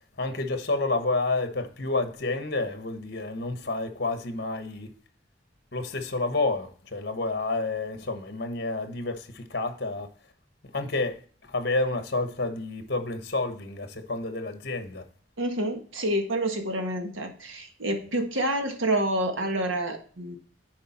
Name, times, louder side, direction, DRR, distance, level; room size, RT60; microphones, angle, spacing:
voice 1, 0.2-4.9 5.7-10.1 10.7-15.1, left 3 dB, 55° left, 1.1 m, -29 dB
voice 2, 15.4-20.4, right 1 dB, 90° right, 1.6 m, -28 dB
10.0 x 4.7 x 4.2 m
head